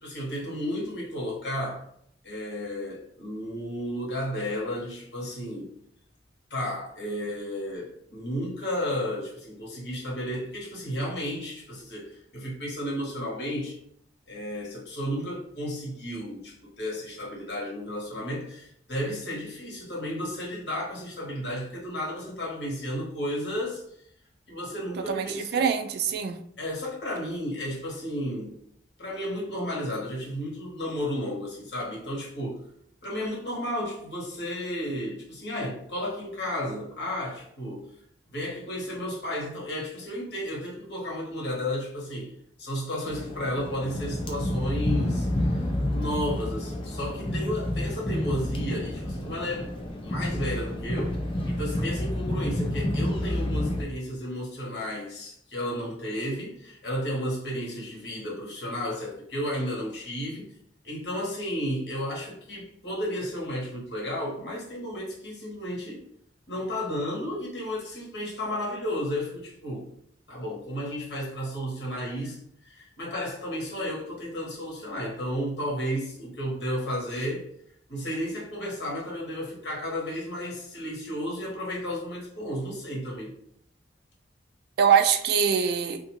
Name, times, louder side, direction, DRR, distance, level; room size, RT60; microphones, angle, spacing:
voice 1, 0.0-1.8 2.2-5.7 6.5-13.8 14.3-23.8 24.5-25.6 26.6-28.5 29.0-32.6 33.0-37.8 38.3-42.3 42.6-45.3 45.9-51.2 51.5-60.5 60.8-66.0 66.5-69.9 70.3-77.5 77.9-83.3, equal, 65° left, -4 dB, 1.2 m, -33 dB
voice 2, 25.1-26.4 84.8-86.0, right 7 dB, 60° right, 8 dB, 0.3 m, -23 dB
sound 1, 43.0-53.8, left 1 dB, 30° left, 0.4 m, -29 dB
2.5 x 2.4 x 2.9 m, 0.68 s
head